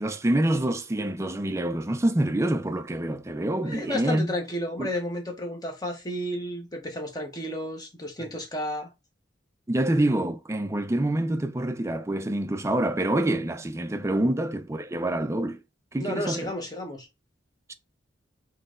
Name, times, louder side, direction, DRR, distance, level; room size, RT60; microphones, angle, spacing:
voice 1, 0.0-4.3 4.8-4.9 9.7-15.6 15.9-16.5 17.7-17.8, right 1 dB, 15° right, 0.4 m, -26 dB
voice 2, 3.6-8.9 16.0-17.1, left 1 dB, 20° left, 1.2 m, -32 dB
4.0 x 3.2 x 3.8 m
head